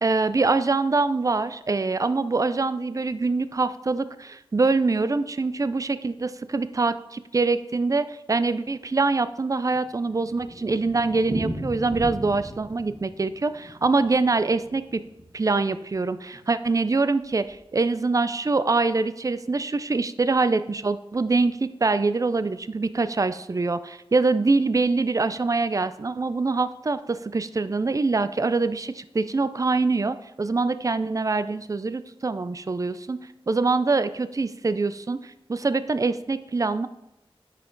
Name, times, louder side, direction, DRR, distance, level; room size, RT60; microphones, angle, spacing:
voice 1, 0.0-15.0 15.3-33.2 33.5-36.9, right 3 dB, 35° right, 13 dB, 0.4 m, -24 dB
Thunder, 9.6-15.7 15.9-16.0 16.3-16.4 16.6-16.7 17.3-17.6, equal, 70° right, 3.0 m, -37 dB
9.5 x 5.8 x 3.9 m, 0.91 s
wide cardioid pair, 75°, 10 cm